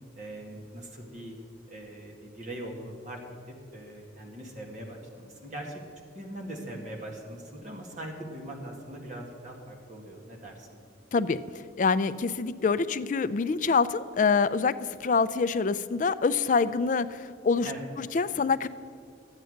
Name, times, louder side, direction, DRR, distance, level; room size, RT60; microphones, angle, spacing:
voice 1, 0.2-1.4 1.7-3.2 3.5-5.8 6.1-10.8 17.7-17.9, right 1 dB, 40° right, -1 dB, 1.8 m, -41 dB
voice 2, 11.8-14.7 15.0-17.7 18.0-18.7, left 5 dB, 45° left, 14 dB, 0.4 m, -25 dB
12.0 x 9.0 x 6.5 m, 2.3 s
head